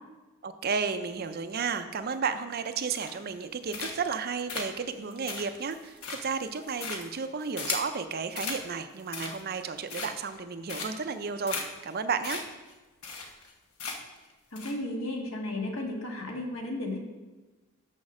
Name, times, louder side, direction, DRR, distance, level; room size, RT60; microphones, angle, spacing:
voice 1, 0.4-11.6 11.8-12.4, right 5 dB, 45° right, 9 dB, 0.5 m, -33 dB
sound 1, 3.0-3.4 3.7-4.2 4.5-8.0 8.4-8.6 9.0-9.5 9.9-10.4 10.7-11.1 11.5-11.6 11.9-12.0 12.2-12.4 12.7-12.8 13.0-13.5 13.8-14.2 14.6-14.7, left 4 dB, 80° left, 1.1 m, -36 dB
voice 2, 14.5-17.0, left 1 dB, 65° left, 1 dB, 1.5 m, -34 dB
6.6 x 6.4 x 6.1 m, 1.2 s
head